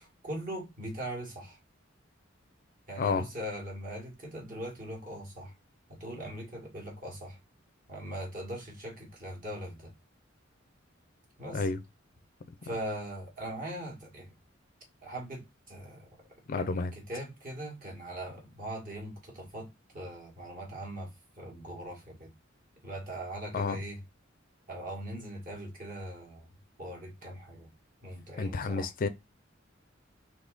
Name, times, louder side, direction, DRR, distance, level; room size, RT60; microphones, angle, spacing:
voice 1, 0.0-1.6 2.9-5.5 5.9-7.4 7.9-9.9 11.4-11.7 12.6-14.3 15.0-16.1 16.5-19.7 19.9-21.1 21.4-22.3 22.8-24.0 24.7-26.5 26.8-27.7 28.0-28.9, right 1 dB, 45° right, 1.8 m, -40 dB
voice 2, 16.5-16.9 23.5-23.8 28.4-29.1, left 4 dB, 45° left, 0.4 m, -30 dB
4.1 x 3.1 x 3.8 m
head